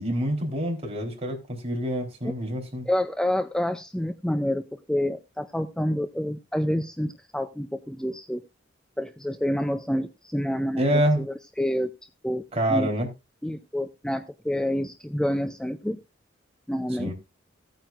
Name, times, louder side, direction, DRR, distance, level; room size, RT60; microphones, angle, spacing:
voice 1, 0.0-2.9 10.8-11.2 12.5-13.1 17.0-17.1, right 1 dB, 35° right, 3.8 m, -26 dB
voice 2, 2.9-8.4 9.0-11.9 12.2-12.4 12.7-12.9 13.4-16.0 16.7-17.1, left 1 dB, 5° left, 0.4 m, -28 dB
16.5 x 9.0 x 2.5 m
head